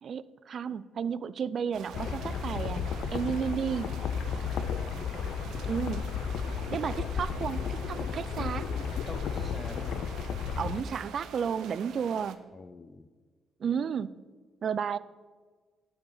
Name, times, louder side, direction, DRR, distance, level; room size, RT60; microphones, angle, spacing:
voice 1, 0.0-3.9 5.7-6.1 6.7-8.6 10.6-12.5 13.6-14.2 14.6-15.0, right 7 dB, 50° right, 17 dB, 0.3 m, -32 dB
sound 1, 1.7-12.3, right 8 dB, 80° right, 0.7 m, -46 dB
sound 2, 1.9-10.8, left 7 dB, 65° left, 0.6 m, -33 dB
voice 2, 4.9-5.9 8.4-10.2 10.6-11.1 12.5-13.1, left 3 dB, 25° left, 14 dB, 0.5 m, -47 dB
12.0 x 5.7 x 5.4 m, 1.4 s
cardioid pair, 120°, 0 cm